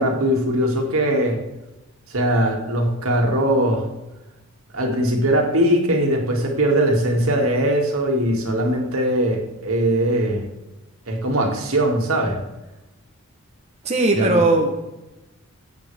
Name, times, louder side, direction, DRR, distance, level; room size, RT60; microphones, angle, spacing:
voice 1, 0.0-1.4 2.1-3.9 4.7-10.5 11.1-12.4 14.1-14.4, right 1 dB, 80° right, 1 dB, 2.3 m, -20 dB
voice 2, 13.8-14.8, right 2 dB, 30° right, 2 dB, 1.0 m, -18 dB
17.0 x 8.2 x 3.5 m, 1.0 s
head